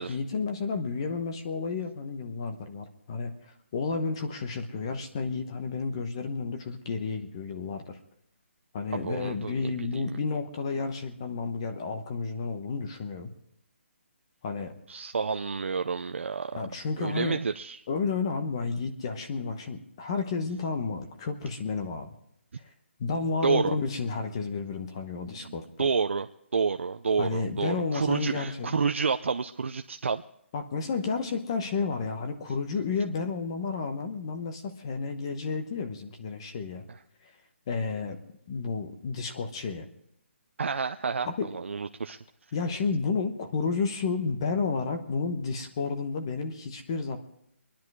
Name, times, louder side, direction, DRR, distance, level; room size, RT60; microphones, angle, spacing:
voice 1, 0.0-8.0 8.7-13.3 14.4-14.7 16.5-17.4 17.9-22.1 23.0-25.9 27.2-28.8 30.5-36.8 37.2-37.3 37.7-38.2 38.5-39.9 41.2-41.5 42.5-47.2, left 4 dB, 20° left, 6 dB, 1.0 m, -31 dB
voice 2, 9.0-10.0 14.9-16.6 17.0-17.8 23.4-23.7 25.4-25.5 25.8-26.3 26.5-30.2 40.6-42.2, right 5 dB, 65° right, 7 dB, 0.6 m, -29 dB
24.0 x 10.5 x 4.8 m, 0.76 s
hypercardioid pair, 175°, 7 cm